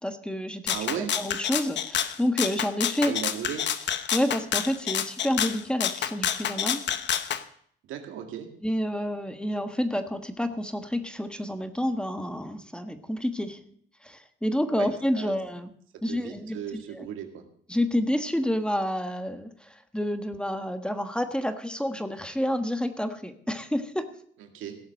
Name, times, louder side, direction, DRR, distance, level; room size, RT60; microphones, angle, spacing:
voice 1, 0.0-3.1 4.1-6.8 8.6-13.6 14.0-15.7 16.0-17.1 17.7-24.0, equal, 5° left, 8 dB, 1.3 m, -29 dB
Rattle (instrument), 0.7-7.4, left 9 dB, 65° left, 1.0 m, -28 dB
voice 2, 0.7-1.1 3.0-3.6 7.9-8.5 14.8-14.9 15.1-15.3 16.1-17.4 24.5-24.8, right 9 dB, 90° right, 5 dB, 2.0 m, -35 dB
17.0 x 7.1 x 6.5 m, 0.62 s
cardioid pair, 90°, 20 cm